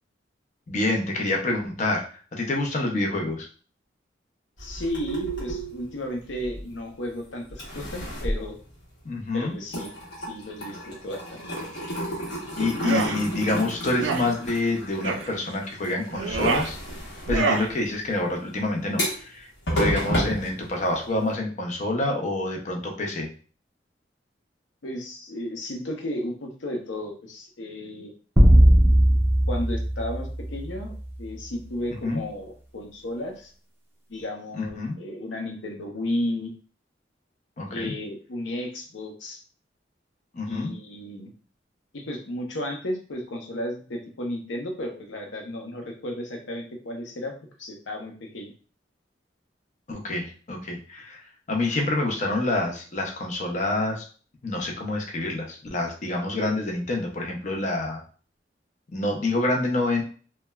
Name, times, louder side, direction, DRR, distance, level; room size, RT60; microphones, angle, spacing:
voice 1, 0.7-3.5 9.0-9.5 12.6-16.8 17.3-19.5 19.8-23.3 32.0-32.2 34.5-35.0 37.6-37.9 40.3-40.7 49.9-54.0 54.4-58.0 58.9-60.0, left 2 dB, 40° left, 1 dB, 0.6 m, -27 dB
voice 2, 4.6-8.6 9.3-9.9 10.2-11.4 24.8-28.1 29.5-30.9 31.2-33.5 34.1-36.5 37.7-39.4 40.5-41.3 41.9-48.5, left 1 dB, 90° left, 2 dB, 0.7 m, -33 dB
sound 1, 4.6-7.1 7.5-9.3 9.6-21.3, equal, 65° left, 1.0 m, -32 dB
sound 2, 12.7-13.2 13.9-14.3 15.0-15.3 16.1-16.7 17.3-17.7, right 5 dB, 85° right, 0.3 m, -26 dB
sound 3, 28.4-30.9, equal, 10° right, 0.4 m, -18 dB
3.1 x 2.2 x 2.2 m, 0.40 s
head